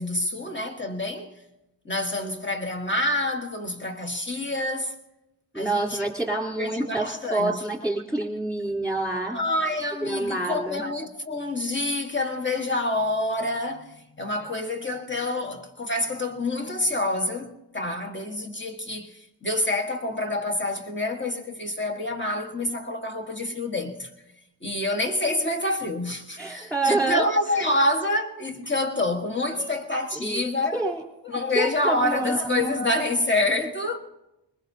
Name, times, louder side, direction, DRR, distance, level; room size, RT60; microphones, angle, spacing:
voice 1, 0.0-1.4 1.8-5.0 5.5-6.0 6.6-7.6 9.3-24.1 24.6-30.8 31.2-34.0, left 2 dB, 25° left, 1.5 m, -27 dB
voice 2, 5.5-9.4 10.0-10.8 14.4-14.5 26.4-27.2 27.5-27.8 29.6-29.7 30.2-30.5 30.7-31.0 31.6-32.8, right 2 dB, ahead, 3.5 m, -27 dB
24.5 x 21.0 x 2.8 m
wide cardioid pair, 110°, 44 cm